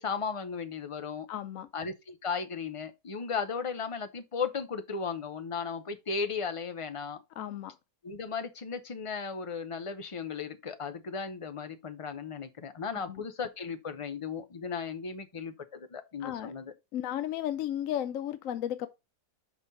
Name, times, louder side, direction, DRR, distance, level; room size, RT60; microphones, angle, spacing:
voice 1, 0.0-1.3 1.7-7.2 8.0-16.7, left 5 dB, 45° left, 0.4 m, -36 dB
voice 2, 1.3-1.7 7.4-7.7 12.9-13.2 16.2-16.5 16.9-18.9, left 11 dB, 65° left, 0.9 m, -34 dB
6.2 x 5.5 x 4.1 m
omnidirectional pair, 1.8 m